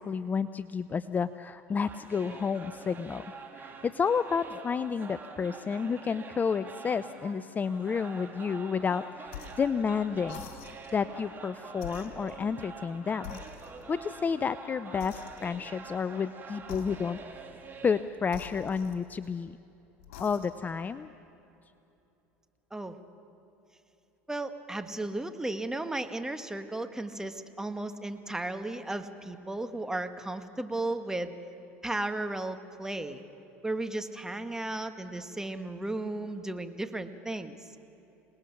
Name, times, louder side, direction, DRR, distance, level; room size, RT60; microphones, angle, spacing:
voice 1, 0.0-3.2 3.6-10.5 10.9-13.4 13.9-17.2 17.8-19.5 20.2-21.1, left 6 dB, 25° left, 13 dB, 0.5 m, -31 dB
sound 1, 1.8-18.6, right 4 dB, 30° right, 2.6 m, -46 dB
sound 2, 9.3-9.7 10.2-11.0 11.7-12.9 13.2-14.0 15.0-15.7 16.6-17.4 18.3-19.4 20.0-20.7, left 8 dB, 80° left, 2.7 m, -46 dB
voice 2, 24.3-31.4 31.8-33.2 33.6-37.6, right 2 dB, 10° right, 8 dB, 1.4 m, -35 dB
27.0 x 19.0 x 5.9 m, 2.9 s
hypercardioid pair, 90°, 7 cm